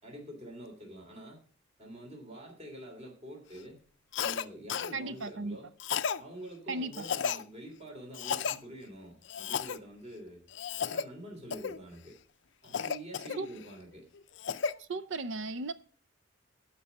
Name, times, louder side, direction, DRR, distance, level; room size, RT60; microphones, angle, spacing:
voice 1, 0.0-1.4 1.8-3.8 4.2-5.7 6.2-10.4 10.8-12.2 12.6-14.1, right 1 dB, 30° right, 3.0 m, -47 dB
Cough, 4.1-4.4 4.7-4.9 5.8-6.2 6.9-7.4 8.1-8.6 9.3-9.8 10.5-11.0 11.5-11.8 12.7-13.7 14.1-14.7, left 7 dB, 55° left, 0.4 m, -33 dB
voice 2, 4.9-5.6 6.7-7.1 13.4-13.5 14.8-15.7, right 3 dB, 65° right, 0.5 m, -36 dB
12.5 x 5.4 x 5.7 m
head